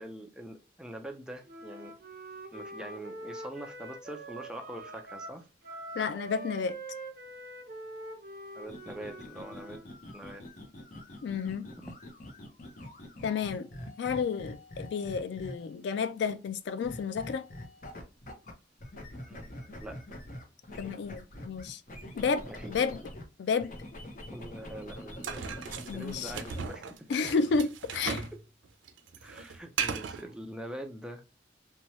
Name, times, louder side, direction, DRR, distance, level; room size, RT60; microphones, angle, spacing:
voice 1, 0.0-1.9 2.5-5.4 8.5-9.8 10.1-10.4 19.3-20.0 22.5-22.7 24.3-25.6 25.9-27.1 29.2-31.2, right 1 dB, 5° right, 0.4 m, -44 dB
Wind instrument woodwind instrument, 1.5-9.9, right 2 dB, 50° right, 0.7 m, -44 dB
voice 2, 5.9-6.8 11.2-11.7 13.2-13.7 14.0-17.4 20.8-21.8 22.2-22.4 22.7-23.0 23.4-23.7 25.9-26.3 27.1-28.3, left 5 dB, 70° left, 0.3 m, -31 dB
sound 1, 8.6-15.8 16.8-18.5 18.8-23.2 23.6-26.7, left 1 dB, 45° left, 0.7 m, -45 dB
sound 2, 25.2-28.4 28.6-30.2, right 6 dB, 90° right, 0.4 m, -36 dB
2.9 x 2.2 x 2.9 m
head